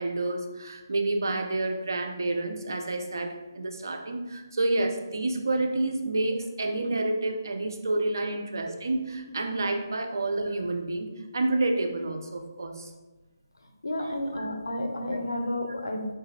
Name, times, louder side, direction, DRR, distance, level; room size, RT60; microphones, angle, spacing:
voice 1, 0.0-11.1 11.3-12.9 14.0-14.1 14.4-14.5, right 2 dB, 60° right, 4 dB, 0.5 m, -29 dB
voice 2, 13.8-16.1, left 1 dB, 75° left, 4 dB, 0.6 m, -31 dB
4.6 x 2.3 x 3.2 m, 1.2 s
figure-of-eight pair, 150°, 2 cm